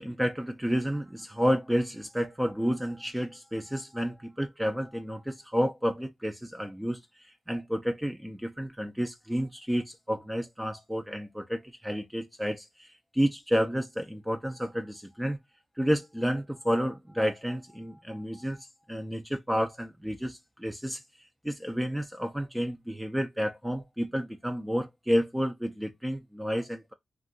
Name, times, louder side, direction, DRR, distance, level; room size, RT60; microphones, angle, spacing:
voice 1, 0.0-15.4 15.8-21.0 21.4-26.9, equal, 5° right, 0.5 m, -30 dB
2.5 x 2.3 x 3.8 m
supercardioid pair, 45°, 0 cm